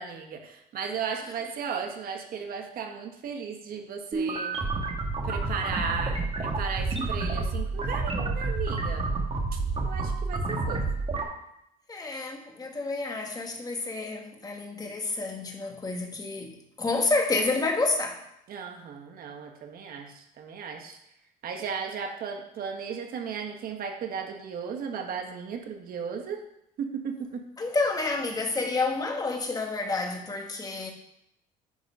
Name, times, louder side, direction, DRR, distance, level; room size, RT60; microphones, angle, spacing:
voice 1, 0.0-4.5 5.2-9.1 9.5-10.8 18.5-21.0 21.4-26.4 26.8-27.4, right 6 dB, 60° right, 3 dB, 1.4 m, -35 dB
sound 1, 4.1-11.2, right 3 dB, 35° right, 1.6 m, -29 dB
voice 2, 11.9-18.2 27.6-30.9, left 3 dB, 20° left, 2 dB, 1.6 m, -29 dB
10.0 x 3.9 x 5.6 m, 0.78 s
cardioid pair, 110°, 17 cm